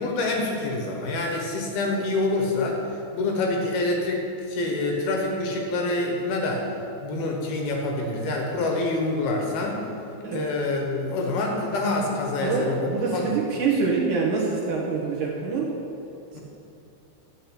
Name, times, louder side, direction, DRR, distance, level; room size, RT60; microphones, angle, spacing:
voice 1, 0.0-2.8 3.1-6.7 7.0-9.8 10.3-13.4 16.3-16.4, left 2 dB, 65° left, 1 dB, 3.0 m, -26 dB
voice 2, 12.4-15.7, right 4 dB, 65° right, -3 dB, 2.0 m, -25 dB
13.0 x 6.5 x 8.2 m, 2.7 s
omnidirectional pair, 5.3 m